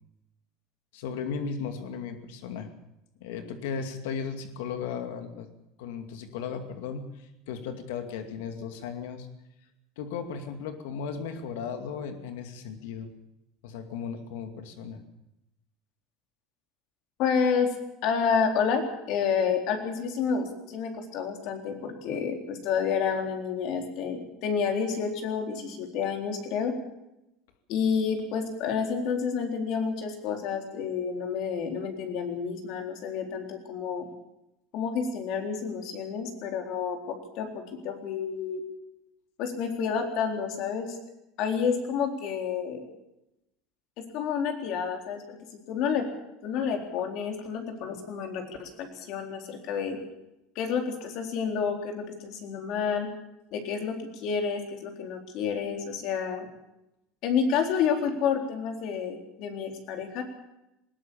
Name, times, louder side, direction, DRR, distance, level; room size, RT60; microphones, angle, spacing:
voice 1, 0.9-2.7 3.2-5.5 5.8-9.3 10.0-13.1 13.6-15.0, left 6 dB, 90° left, 6 dB, 2.4 m, -36 dB
voice 2, 17.2-17.7 18.0-26.7 27.7-34.1 34.7-38.6 39.4-41.0 41.4-42.9 44.0-46.1 46.4-50.0 50.6-53.1 53.5-56.5 57.2-60.2, left 6 dB, 50° left, 4 dB, 4.1 m, -29 dB
20.0 x 18.5 x 7.1 m, 0.88 s
cardioid pair, 160°, 0 cm